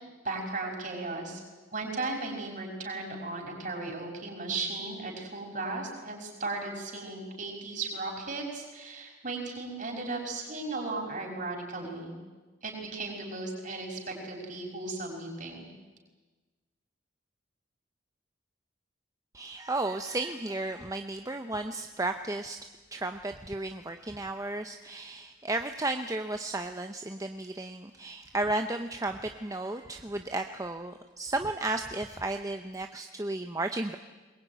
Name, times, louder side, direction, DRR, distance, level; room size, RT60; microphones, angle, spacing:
voice 1, 0.2-1.4 1.7-12.1 12.6-15.7, right 3 dB, 40° right, 1 dB, 5.8 m, -36 dB
voice 2, 19.3-22.6 22.9-34.0, right 2 dB, 15° right, 7 dB, 0.7 m, -33 dB
22.0 x 20.5 x 9.3 m, 1.3 s
head